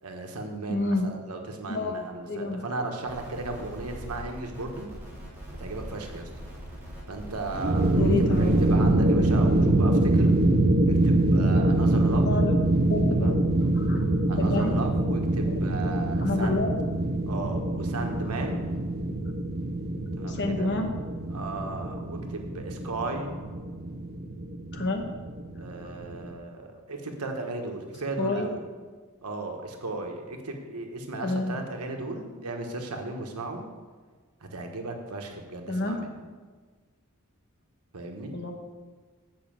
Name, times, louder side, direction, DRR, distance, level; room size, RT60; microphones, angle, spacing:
voice 1, 0.0-4.9 5.6-6.3 7.1-10.3 10.8-12.3 13.1-13.4 14.3-16.7 17.3-18.6 20.2-20.7 21.3-23.3 25.6-28.6 29.2-33.7 34.4-36.1 37.9-38.4, right 2 dB, 90° right, 3 dB, 1.3 m, -35 dB
voice 2, 0.7-1.1 1.7-1.9 2.3-2.6 8.0-8.5 12.3-12.5 12.9-13.3 13.8-14.0 14.4-14.7 16.2-16.7 20.3-20.9 24.7-25.0 28.2-28.5 31.2-31.6 35.7-36.0 38.3-38.5, left 2 dB, 55° left, 4 dB, 1.2 m, -28 dB
sound 1, 3.1-8.7, equal, 10° right, 3.1 m, -42 dB
sound 2, 7.5-26.3, right 1 dB, 45° right, 0.7 m, -24 dB
7.3 x 5.6 x 7.6 m, 1.5 s
head